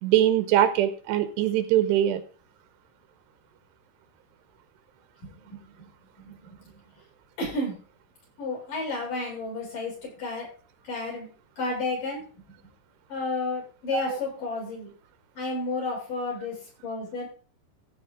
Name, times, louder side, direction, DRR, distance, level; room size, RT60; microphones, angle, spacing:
voice 1, 0.0-2.2 13.9-14.2, right 11 dB, 80° right, 10 dB, 2.8 m, -22 dB
voice 2, 5.2-5.9 6.2-6.6 7.4-7.8 8.4-10.5 10.8-11.3 11.6-12.2 13.1-14.9 15.4-16.6 16.8-17.3, left 3 dB, 45° left, -3 dB, 8.7 m, -32 dB
15.0 x 6.3 x 5.1 m, 0.39 s
omnidirectional pair, 5.1 m